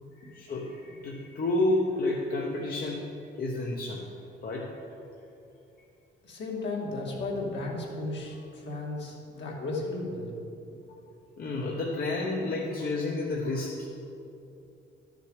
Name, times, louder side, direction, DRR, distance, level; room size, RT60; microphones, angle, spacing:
voice 1, 0.2-3.1 3.4-4.1 4.4-4.7 10.9-11.0 11.4-13.8, left 2 dB, 50° left, -2 dB, 1.1 m, -30 dB
voice 2, 6.2-10.3, left 2 dB, 65° left, -3 dB, 2.1 m, -34 dB
11.0 x 6.5 x 4.9 m, 2.7 s
cardioid pair, 90°, 20 cm